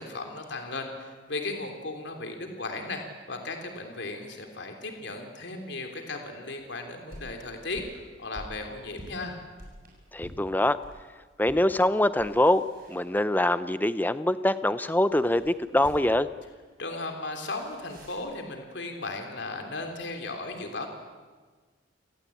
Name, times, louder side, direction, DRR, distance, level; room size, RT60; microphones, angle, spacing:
voice 1, 0.0-9.4 16.8-20.9, left 2 dB, 60° left, 4 dB, 3.3 m, -36 dB
sound 1, 6.6-11.0 11.4-11.7 12.1-13.5 15.1-16.3 17.5-18.3, equal, 45° right, 7.7 m, -48 dB
voice 2, 10.1-10.8 11.4-12.6 12.9-16.3, left 1 dB, 10° left, 13 dB, 0.7 m, -24 dB
30.0 x 18.5 x 8.6 m, 1.4 s
head